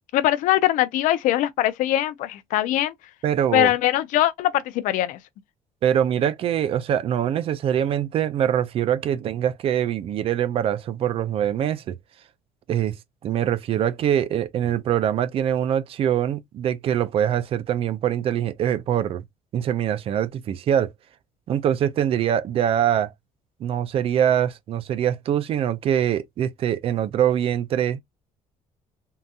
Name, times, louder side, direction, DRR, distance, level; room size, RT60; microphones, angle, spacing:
voice 1, 0.1-2.9 3.5-5.2, left 14 dB, 70° left, 0.4 m, -22 dB
voice 2, 3.2-3.7 5.8-12.0 12.7-13.0 13.2-19.2 19.5-20.9 21.5-23.1 23.6-28.0, right 10 dB, 45° right, 0.4 m, -23 dB
3.7 x 2.7 x 2.3 m
cardioid pair, 155°, 14 cm